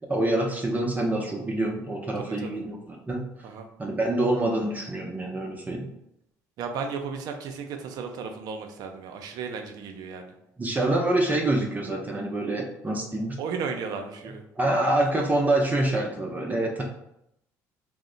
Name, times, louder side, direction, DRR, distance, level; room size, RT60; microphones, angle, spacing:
voice 1, 0.0-3.3 3.8-5.9 10.6-13.4 14.6-16.8, right 1 dB, 20° right, 0 dB, 0.6 m, -26 dB
voice 2, 2.3-2.6 3.4-3.7 6.6-10.3 13.4-14.5, right 5 dB, 65° right, 5 dB, 0.5 m, -34 dB
2.7 x 2.1 x 3.8 m, 0.80 s
supercardioid pair, 80°, 7 cm